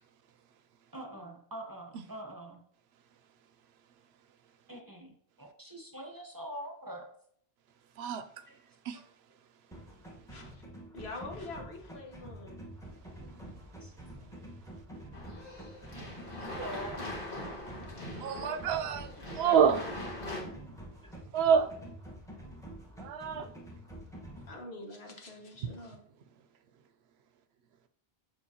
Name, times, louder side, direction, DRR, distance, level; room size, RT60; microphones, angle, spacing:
voice 1, 0.9-2.6 4.7-7.1 8.5-8.6 8.9-9.0 13.8-13.9 14.9-15.0 16.4-17.0 21.0-21.1, right 1 dB, 20° right, 0.8 m, -44 dB
sound 1, 9.7-24.5, right 1 dB, 5° left, 1.1 m, -48 dB
voice 2, 10.3-10.6 10.9-12.6 17.8-18.5 19.2-19.8 20.2-20.6 24.3-26.0, left 2 dB, 75° left, 1.5 m, -45 dB
sound 2, 15.1-20.4, left 1 dB, 55° left, 2.1 m, -42 dB
voice 3, 18.2-19.1 19.4-19.8 21.3-21.7 23.0-23.5, right 7 dB, 75° right, 0.8 m, -27 dB
7.2 x 5.2 x 2.8 m
omnidirectional pair, 1.1 m